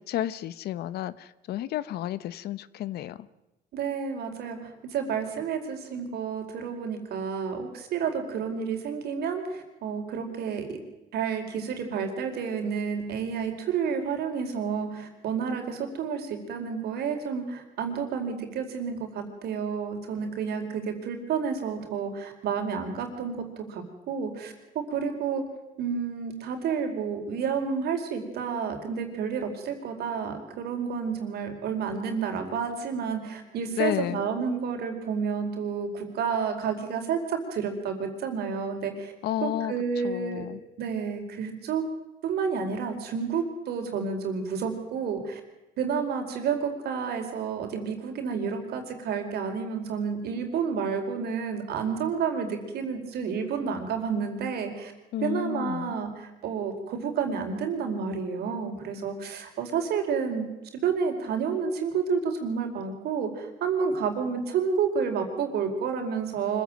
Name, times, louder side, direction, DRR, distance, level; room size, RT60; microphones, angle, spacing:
voice 1, 0.0-3.3 20.8-20.9 33.8-34.3 39.2-39.7 40.0-40.6 55.1-56.0, left 12 dB, 70° left, 17 dB, 1.0 m, -31 dB
voice 2, 3.7-10.8 11.1-25.4 25.8-39.1 39.4-40.5 40.8-41.8 42.2-45.4 45.8-54.9 55.2-66.6, right 6 dB, 70° right, 5 dB, 4.5 m, -30 dB
25.5 x 15.5 x 9.1 m, 0.99 s
cardioid pair, 110°, 17 cm